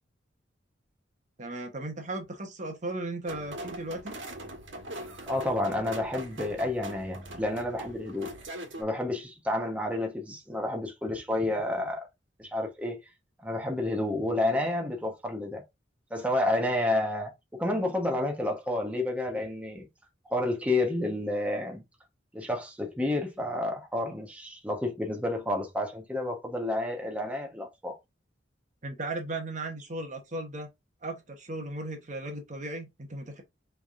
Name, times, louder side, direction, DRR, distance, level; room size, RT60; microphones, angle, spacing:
voice 1, 1.4-4.2 28.8-30.7 31.0-33.4, right 2 dB, 40° right, 1.0 m, -36 dB
sound 1, 3.3-8.8, right 1 dB, 90° right, 1.5 m, -41 dB
voice 2, 5.3-8.3 8.8-12.1 12.4-13.0 13.4-15.6 16.1-19.8 20.3-21.8 22.3-28.0, left 1 dB, 5° right, 1.1 m, -30 dB
6.0 x 3.5 x 2.5 m
head